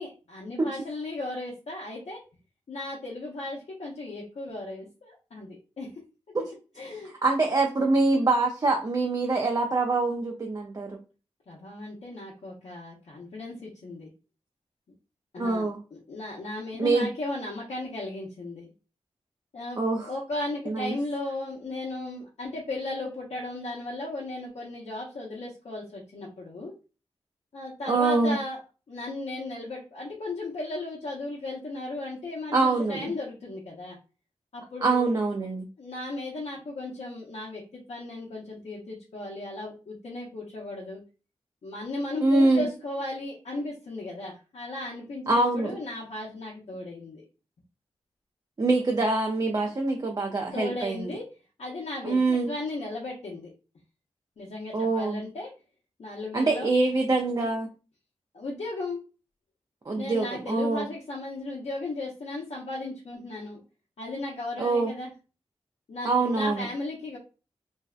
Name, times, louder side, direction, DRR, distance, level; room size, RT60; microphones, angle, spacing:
voice 1, 0.0-2.2 2.7-5.9 6.8-7.1 11.5-14.1 15.3-18.7 19.5-26.7 27.5-28.6 28.9-34.0 34.5-35.1 35.8-41.0 41.6-47.2 49.6-49.8 50.5-51.3 51.6-53.5 54.4-55.5 56.0-56.7 58.3-59.0 59.9-63.6 64.0-65.1 65.9-67.2, left 2 dB, 75° left, -4 dB, 0.6 m, -36 dB
voice 2, 7.2-11.0 15.4-15.8 16.8-17.1 19.8-20.1 20.7-21.0 27.9-28.4 32.5-33.1 34.8-35.7 42.2-42.7 45.3-45.8 48.6-51.1 52.0-52.5 54.7-55.2 56.3-57.7 59.9-60.8 64.6-64.9 66.0-66.7, right 3 dB, 35° right, 2 dB, 0.4 m, -24 dB
2.6 x 2.1 x 2.3 m, 0.34 s
cardioid pair, 55°, 11 cm